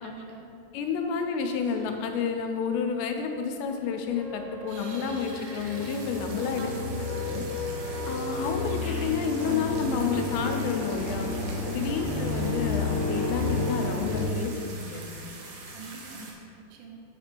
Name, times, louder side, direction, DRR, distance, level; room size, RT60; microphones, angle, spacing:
voice 1, 0.0-0.5 6.6-7.1 11.9-12.4 15.7-17.0, right 3 dB, 85° right, 0 dB, 2.9 m, -43 dB
sound 1, 0.6-0.7 1.1-1.2 1.6-2.3 2.6-2.7 2.9-3.0 3.4-3.5 4.0-4.2 4.6-16.3, right 3 dB, 70° right, 2.5 m, -44 dB
voice 2, 0.7-6.7 6.9-7.4 8.1-11.3 11.7-15.1, left 6 dB, 90° left, 4 dB, 2.9 m, -30 dB
sound 2, 4.1-14.2, left 2 dB, 50° left, 2.4 m, -31 dB
8.1 x 5.0 x 4.5 m, 2.6 s
omnidirectional pair, 4.9 m